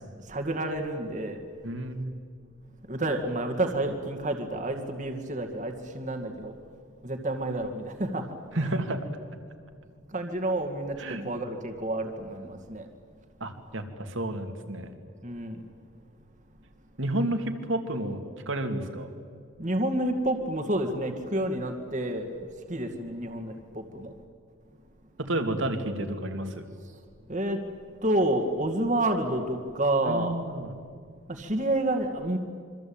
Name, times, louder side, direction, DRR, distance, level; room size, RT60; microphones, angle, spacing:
voice 1, 0.3-1.4 2.9-6.5 7.0-8.3 8.6-8.7 10.1-11.0 11.2-12.9 15.2-15.6 19.6-22.3 22.7-24.1 27.3-27.6 28.0-30.4 31.3-32.4, right 1 dB, 35° right, 5 dB, 2.1 m, -29 dB
voice 2, 1.6-2.1 8.6-9.1 11.0-11.2 13.4-14.9 17.0-18.2 18.5-19.1 25.2-26.6 30.1-30.7, right 1 dB, 65° right, 7 dB, 2.7 m, -30 dB
27.0 x 24.5 x 8.9 m, 2.2 s
head